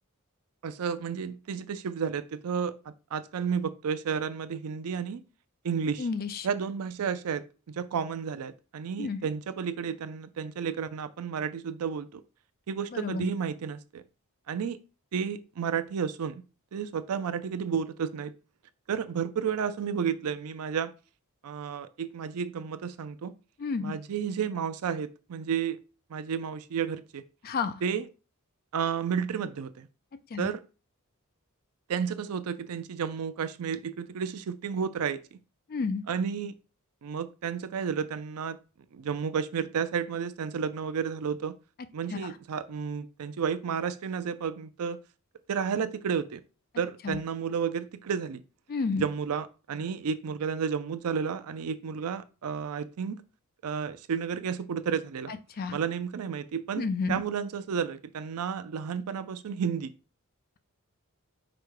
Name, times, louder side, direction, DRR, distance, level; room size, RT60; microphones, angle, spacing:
voice 1, 0.6-2.7 3.1-5.2 5.6-6.1 6.4-12.2 12.7-14.0 14.5-14.8 15.1-16.4 16.7-18.3 18.9-20.9 21.4-23.3 23.8-25.8 26.1-27.2 27.8-28.1 28.7-29.9 30.4-30.6 31.9-35.4 36.1-36.5 37.0-38.6 38.9-41.6 41.9-45.0 45.5-46.4 46.8-48.4 48.9-53.2 53.6-55.3 55.7-59.9, right 6 dB, 75° right, 0.4 m, -32 dB
voice 2, 6.0-6.5 9.0-9.3 12.9-13.3 23.6-23.9 27.4-27.7 30.3-30.5 35.7-36.0 42.1-42.2 47.0-47.2 48.7-49.0 55.6-55.8 56.8-57.2, left 4 dB, 40° left, 0.4 m, -30 dB
5.1 x 2.2 x 4.6 m
head